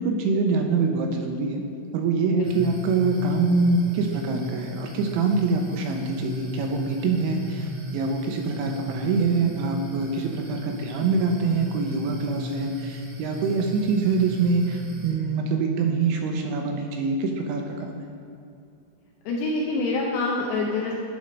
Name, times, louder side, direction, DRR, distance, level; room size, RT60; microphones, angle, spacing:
voice 1, 0.0-1.6 1.9-18.1, right 4 dB, 85° right, 3 dB, 2.8 m, -25 dB
sound 1, 2.4-15.1, left 1 dB, 45° right, 1.6 m, -36 dB
voice 2, 19.3-20.9, left 3 dB, 80° left, -2 dB, 2.4 m, -26 dB
11.5 x 4.2 x 5.1 m, 2.7 s
omnidirectional pair, 5.6 m